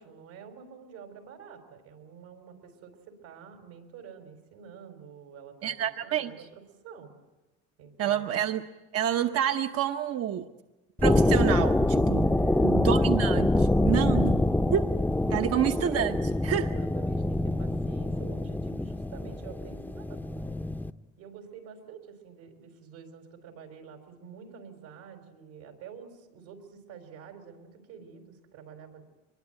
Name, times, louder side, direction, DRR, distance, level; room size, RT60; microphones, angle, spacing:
voice 1, 0.0-7.1 7.8-8.4 12.2-12.8 15.4-15.7 16.6-20.6 21.2-29.0, right 7 dB, 90° right, 5 dB, 4.7 m, -48 dB
voice 2, 5.6-6.3 8.0-8.6 8.9-10.5 11.0-12.3 12.6-14.3 14.7-14.9 15.3-16.7, right 10 dB, 55° right, 6 dB, 1.0 m, -28 dB
sound 1, 11.0-20.9, left 1 dB, 5° left, 0.8 m, -25 dB
24.0 x 21.5 x 9.1 m, 1.1 s
supercardioid pair, 90°, 30 cm